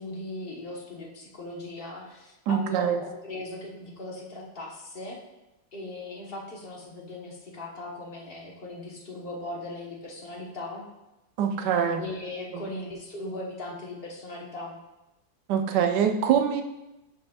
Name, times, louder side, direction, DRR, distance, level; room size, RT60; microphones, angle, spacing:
voice 1, 0.0-5.2 5.7-10.9 12.0-14.8, left 2 dB, 35° left, -1 dB, 1.1 m, -38 dB
voice 2, 2.5-3.0 11.4-12.0 12.5-12.6 15.5-16.6, right 8 dB, 70° right, 5 dB, 1.2 m, -24 dB
11.0 x 5.3 x 2.3 m, 0.95 s
omnidirectional pair, 2.0 m